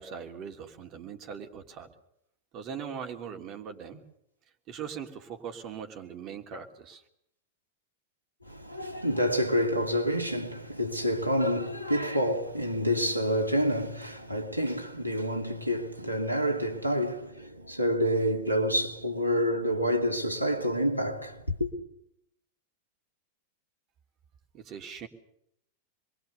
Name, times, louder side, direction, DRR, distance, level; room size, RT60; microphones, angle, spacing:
voice 1, 0.0-1.9 2.5-4.0 4.7-7.0 24.5-25.1, right 7 dB, 35° right, 3.2 m, -40 dB
voice 2, 8.5-21.7, equal, 90° left, 2.8 m, -28 dB
27.0 x 22.0 x 6.8 m
figure-of-eight pair, 90°, 0 cm